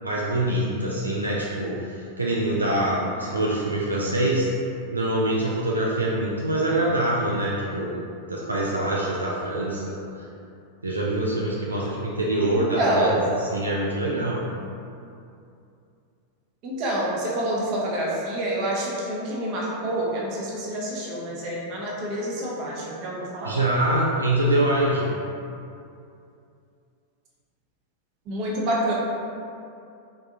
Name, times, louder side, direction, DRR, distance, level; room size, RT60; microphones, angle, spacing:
voice 1, 0.0-4.5 4.9-8.0 8.3-10.0 10.8-13.1 13.5-14.4 23.4-25.1, right 1 dB, 80° right, -5 dB, 0.3 m, -24 dB
voice 2, 12.5-13.2 16.6-23.5 28.3-28.9, right 1 dB, 40° right, -4 dB, 0.7 m, -27 dB
3.4 x 2.3 x 2.7 m, 2.5 s
figure-of-eight pair, 90°, 0 cm